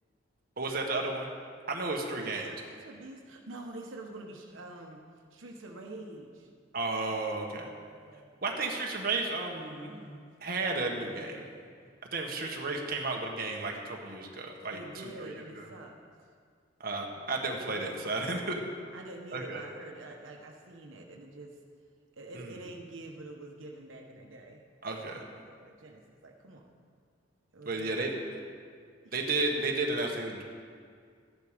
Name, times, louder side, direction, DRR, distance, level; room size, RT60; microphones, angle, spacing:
voice 1, 0.6-1.3 1.7-2.5 6.7-7.7 8.4-10.0 10.4-11.4 12.1-14.8 15.2-15.7 16.8-18.6 19.3-19.6 22.4-22.6 24.8-25.2 27.6-28.1 29.1-30.4, right 3 dB, 50° right, 1 dB, 1.5 m, -33 dB
voice 2, 2.1-5.0 5.3-6.5 7.1-8.4 9.1-10.3 10.9-11.8 14.7-16.0 17.6-18.3 18.9-21.6 22.1-26.7 27.5-28.3 29.0-29.1 29.5-29.6, right 2 dB, 90° right, 1 dB, 1.2 m, -47 dB
14.0 x 10.5 x 5.1 m, 2.1 s
head